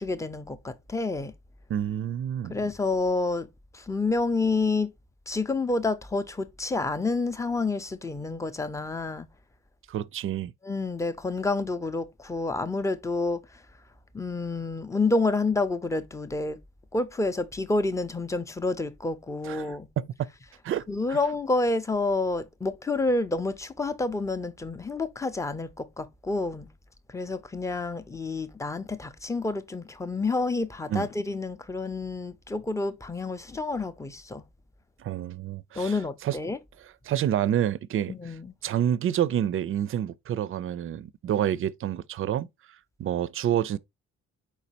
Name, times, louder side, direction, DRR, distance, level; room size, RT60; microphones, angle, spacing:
voice 1, 0.0-1.3 2.5-3.5 3.7-4.9 5.3-9.3 10.6-13.6 14.1-16.6 16.9-19.9 20.9-26.7 27.1-34.4 35.8-36.6 38.1-38.5, left 3 dB, 10° left, 0.5 m, -29 dB
voice 2, 1.7-2.5 9.9-10.5 19.5-19.6 20.0-20.3 20.6-21.2 30.9-31.1 35.0-35.9 36.2-36.4 37.1-38.1 38.6-42.5 43.0-43.8, right 10 dB, 45° right, 0.4 m, -28 dB
4.6 x 4.0 x 2.8 m
cardioid pair, 90°, 30 cm